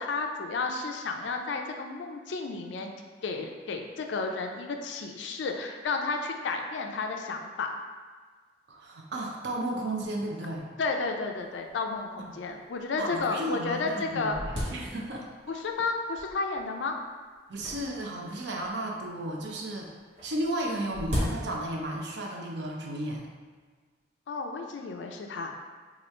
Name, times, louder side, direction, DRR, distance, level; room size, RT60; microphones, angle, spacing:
voice 1, 0.0-2.9 3.2-7.7 10.8-14.4 15.5-17.0 24.3-25.5, left 4 dB, 75° left, 3 dB, 0.4 m, -32 dB
voice 2, 8.7-10.7 13.0-15.3 17.5-19.9 20.2-23.3, right 1 dB, 65° right, 0 dB, 0.6 m, -34 dB
sound 1, 11.4-11.5 11.7-11.8 12.5-12.6 13.2-13.3 13.7-15.4 16.2-16.6 17.5-18.9 20.1-22.0, equal, 90° right, 1.1 m, -36 dB
3.0 x 2.3 x 4.2 m, 1.5 s
head